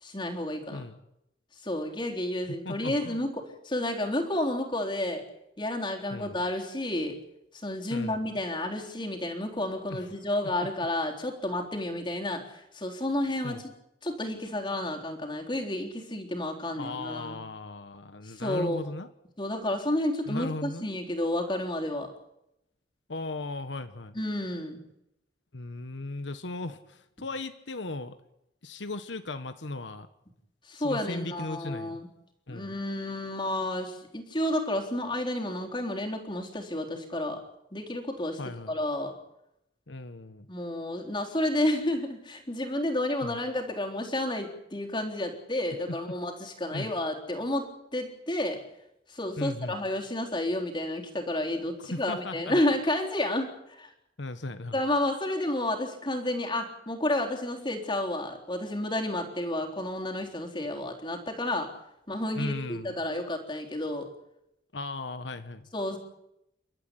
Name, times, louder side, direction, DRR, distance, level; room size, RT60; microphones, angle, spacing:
voice 1, 0.0-0.8 1.6-5.2 5.6-7.2 7.6-13.6 14.0-17.4 18.4-18.8 19.4-22.1 24.1-24.8 30.7-32.1 32.5-37.4 37.7-38.4 38.7-39.1 40.5-48.6 49.1-53.9 54.7-61.7 62.1-64.1 65.7-66.0, left 1 dB, 25° left, 2 dB, 3.8 m, -31 dB
voice 2, 2.4-3.2 6.1-6.4 7.9-8.3 9.9-10.2 13.4-13.6 16.7-19.1 20.3-20.9 23.1-24.2 25.5-28.2 28.6-30.1 30.7-32.0 32.5-32.8 38.4-38.7 39.9-40.5 43.2-43.4 46.7-46.9 49.4-49.8 51.8-52.6 54.2-54.8 62.3-63.0 64.7-65.7, left 2 dB, 85° left, 10 dB, 1.3 m, -37 dB
29.5 x 13.0 x 9.9 m, 0.83 s
head